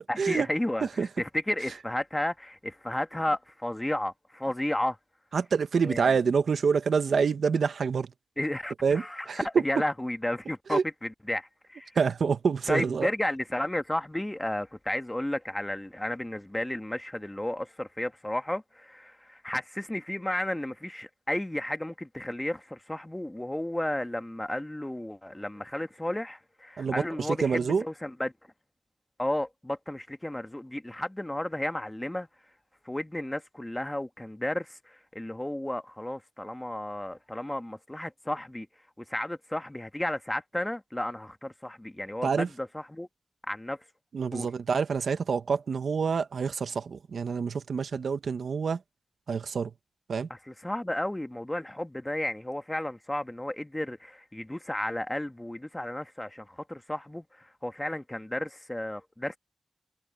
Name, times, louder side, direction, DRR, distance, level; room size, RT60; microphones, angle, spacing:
voice 1, 0.1-5.0 5.8-6.1 8.4-11.9 12.7-28.3 29.2-32.3 32.8-38.7 39.0-43.1 43.5-43.8 44.3-44.5 50.3-59.4, left 1 dB, 10° left, 1.4 m, -33 dB
voice 2, 5.3-8.1 8.8-9.4 10.7-10.8 11.9-13.1 26.8-27.8 42.2-42.5 44.1-48.8 49.3-49.7 50.1-50.3, right 5 dB, 85° right, 1.0 m, -27 dB
wide cardioid pair, 95°, 0 cm